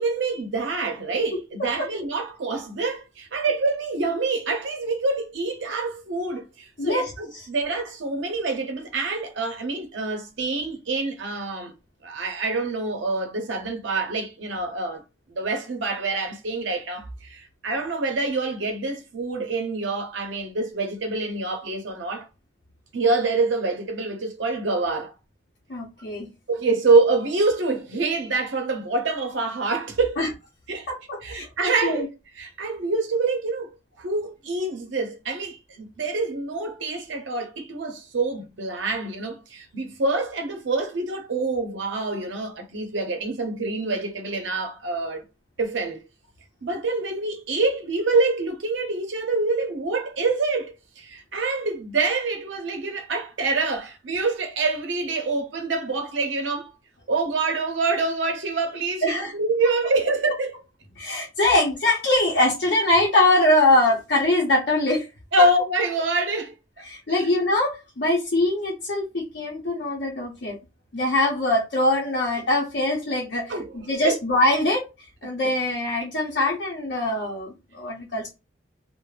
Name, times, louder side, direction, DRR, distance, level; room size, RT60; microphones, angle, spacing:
voice 1, 0.0-11.7 12.0-15.0 15.3-22.2 22.9-25.1 26.5-30.2 30.7-30.9 31.2-32.1 32.4-33.7 34.0-45.2 45.6-46.0 46.6-56.7 57.1-60.6 65.3-66.5 67.1-67.3 73.5-74.2, right 3 dB, 75° right, 0.7 m, -26 dB
voice 2, 6.8-7.5 25.7-26.3 30.2-30.3 30.9-32.1 59.0-59.3 61.0-65.1 65.4-65.5 66.8-70.6 70.9-73.5 73.9-74.9 75.2-78.3, left 1 dB, 55° left, 0.7 m, -23 dB
2.4 x 2.0 x 3.1 m
head